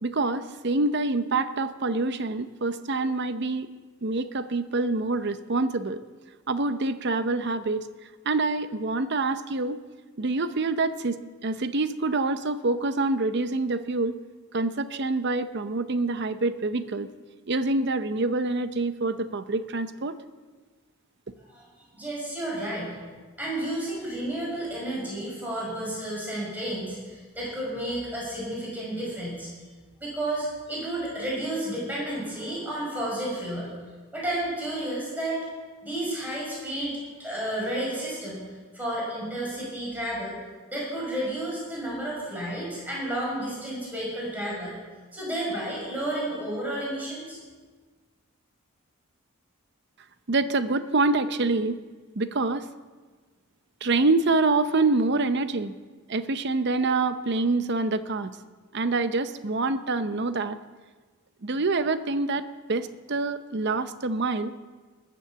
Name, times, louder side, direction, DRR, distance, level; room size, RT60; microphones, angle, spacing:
voice 1, 0.0-3.7 4.0-6.0 6.5-7.9 8.3-9.8 10.2-14.2 14.5-17.1 17.5-20.2 50.3-51.8 52.1-52.7 53.8-55.7 56.1-58.3 58.7-60.6 61.4-64.5, right 3 dB, 50° right, 12 dB, 0.7 m, -26 dB
voice 2, 21.9-22.9 23.4-29.5 30.0-33.7 34.1-35.4 35.8-38.4 38.7-40.4 40.7-44.7 45.1-47.4, right 1 dB, 10° right, -5 dB, 5.6 m, -31 dB
20.0 x 7.6 x 7.0 m, 1.4 s
head